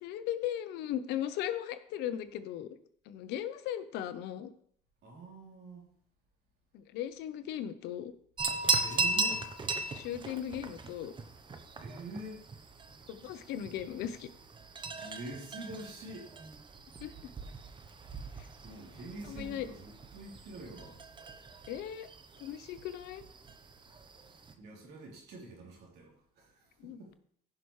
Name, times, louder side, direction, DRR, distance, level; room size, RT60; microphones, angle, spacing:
voice 1, 0.0-2.8 3.1-4.5 6.7-8.1 9.9-11.1 13.1-14.3 17.0-17.3 18.4-18.5 19.3-19.7 21.7-22.1 22.4-23.2 26.8-27.0, left 11 dB, 85° left, 12 dB, 0.8 m, -37 dB
voice 2, 5.0-5.9 8.8-9.5 11.8-12.5 15.0-16.3 18.6-21.0 24.6-27.1, right 1 dB, 75° right, -1 dB, 3.1 m, -46 dB
sound 1, 8.4-24.5, right 3 dB, 30° right, 0.9 m, -38 dB
15.5 x 5.9 x 3.2 m, 0.63 s
cardioid pair, 110°, 17 cm